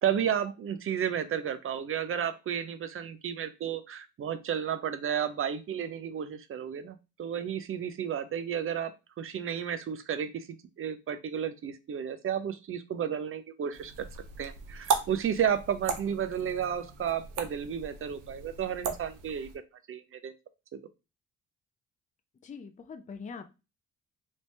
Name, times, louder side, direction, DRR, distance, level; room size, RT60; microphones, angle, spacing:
voice 1, 0.0-10.5 10.8-14.1 14.4-19.5 19.9-20.3 20.7-20.8, right 8 dB, 45° right, 11 dB, 0.6 m, -32 dB
sound 1, 13.7-19.6, right 6 dB, 85° right, 0.7 m, -36 dB
voice 2, 22.4-23.4, left 5 dB, 25° left, 7 dB, 0.5 m, -42 dB
3.1 x 2.7 x 3.2 m, 0.28 s
cardioid pair, 90°, 30 cm